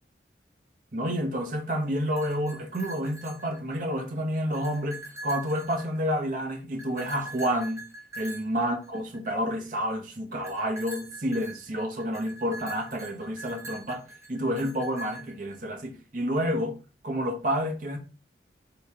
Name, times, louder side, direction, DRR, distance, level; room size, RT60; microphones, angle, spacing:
voice 1, 0.9-7.8 8.2-16.8 17.0-18.0, equal, 45° right, 0.9 m, -29 dB
sound 1, 2.0-4.0 4.3-6.3 6.8-9.5 10.4-15.5, right 2 dB, 15° right, 0.8 m, -43 dB
3.1 x 2.9 x 4.6 m
head